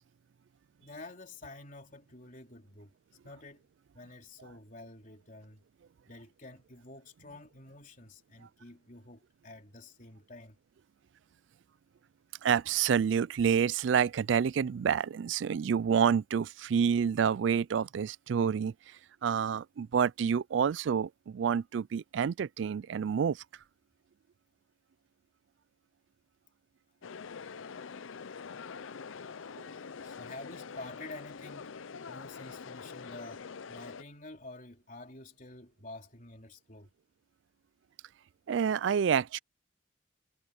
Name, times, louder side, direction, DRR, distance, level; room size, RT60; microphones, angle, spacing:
voice 1, 0.8-2.9 3.2-5.6 6.1-10.6 30.0-33.4 33.7-36.9, left 2 dB, 40° left, 3.6 m, -49 dB
voice 2, 12.4-18.7 19.2-23.4 38.5-39.4, right 7 dB, 65° right, 0.3 m, -28 dB
sound 1, 27.0-34.0, left 5 dB, 80° left, 0.6 m, -45 dB
head